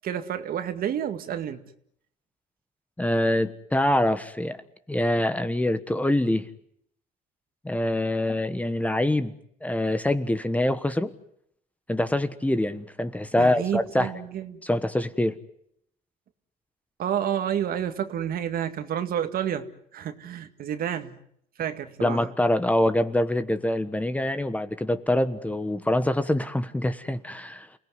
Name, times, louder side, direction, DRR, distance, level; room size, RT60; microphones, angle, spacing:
voice 1, 0.0-1.7 13.4-14.6 17.0-21.2 21.6-22.3, right 9 dB, 60° right, 9 dB, 2.0 m, -30 dB
voice 2, 3.0-4.6 4.9-6.4 7.6-9.3 9.6-11.1 11.9-14.1 14.6-15.3 22.0-27.7, left 1 dB, 10° left, 11 dB, 1.3 m, -25 dB
29.0 x 18.0 x 9.6 m, 0.71 s
cardioid pair, 110°, 17 cm